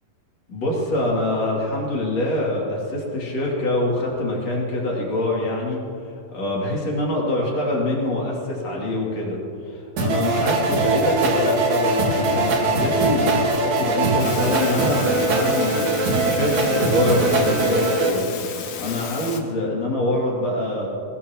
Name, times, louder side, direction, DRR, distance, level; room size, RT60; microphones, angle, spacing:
voice 1, 0.5-5.8 6.3-18.3 18.6-20.9, left 1 dB, 50° left, -3 dB, 3.5 m, -25 dB
sound 1, 10.0-18.1, right 2 dB, 60° right, 2.8 m, -21 dB
sound 2, 14.2-19.4, left 7 dB, 70° left, 2.5 m, -34 dB
22.0 x 17.0 x 2.9 m, 2.6 s
omnidirectional pair, 4.2 m